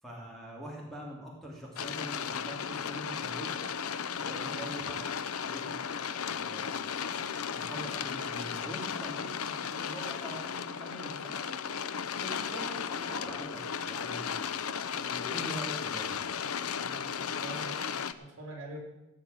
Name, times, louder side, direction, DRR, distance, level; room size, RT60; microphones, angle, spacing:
voice 1, 0.0-3.7 4.3-5.1 5.4-5.7 6.2-6.8 7.5-11.5 12.2-14.4 14.9-16.2, equal, ahead, -3 dB, 3.0 m, -43 dB
sound 1, 1.8-18.1, left 7 dB, 85° left, 0.7 m, -35 dB
voice 2, 4.2-4.6 16.8-18.8, right 1 dB, 60° right, 0 dB, 3.6 m, -45 dB
16.0 x 5.9 x 9.2 m, 0.94 s
head